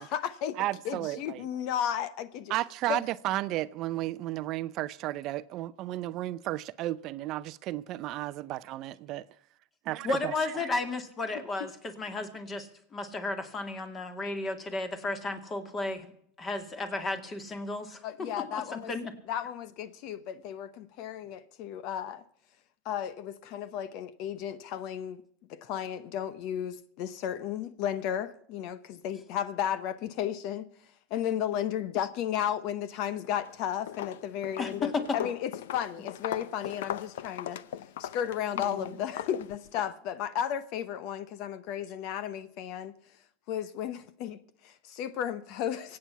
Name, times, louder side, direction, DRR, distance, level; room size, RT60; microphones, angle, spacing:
voice 1, 0.0-0.6 0.8-2.5 2.9-3.0 18.0-18.9 19.3-22.2 22.8-25.2 25.5-30.7 31.1-37.6 38.0-42.9 43.5-46.0, left 10 dB, 55° left, 0.8 m, -34 dB
voice 2, 0.6-1.5 2.5-9.3 9.9-10.7, right 15 dB, 45° right, 0.5 m, -33 dB
voice 3, 10.0-16.1 16.4-19.1 34.6-35.2 38.6-39.0, left 3 dB, 20° left, 2.2 m, -34 dB
Walk footsteps, 33.2-33.6 33.9-39.9, left 11 dB, 90° left, 0.7 m, -38 dB
23.5 x 8.7 x 5.7 m
supercardioid pair, 140°, 0 cm